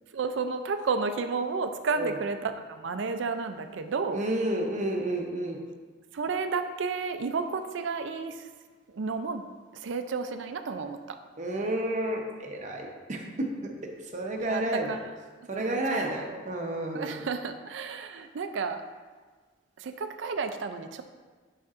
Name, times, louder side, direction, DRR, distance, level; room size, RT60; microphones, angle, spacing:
voice 1, 0.1-4.2 6.1-8.5 8.9-9.5 9.7-11.2 14.4-15.1 15.6-16.4 16.9-18.8 19.8-21.0, right 4 dB, 70° right, 8 dB, 0.4 m, -32 dB
voice 2, 4.1-5.6 11.4-14.9 15.5-17.2, right 1 dB, 40° right, 1 dB, 0.8 m, -31 dB
6.8 x 5.8 x 2.5 m, 1.4 s
head